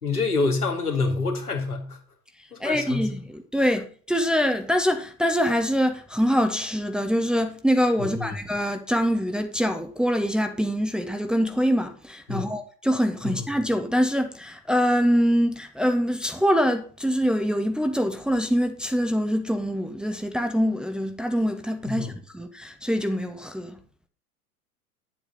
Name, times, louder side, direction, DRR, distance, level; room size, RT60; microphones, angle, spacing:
voice 1, 0.0-2.0 2.5-3.1 8.0-8.3 12.3-12.5 13.2-13.4 21.9-22.1, left 3 dB, 80° left, 2.3 m, -27 dB
voice 2, 2.6-23.8, equal, ahead, 0.9 m, -24 dB
10.5 x 7.5 x 4.1 m
figure-of-eight pair, 90°, 44 cm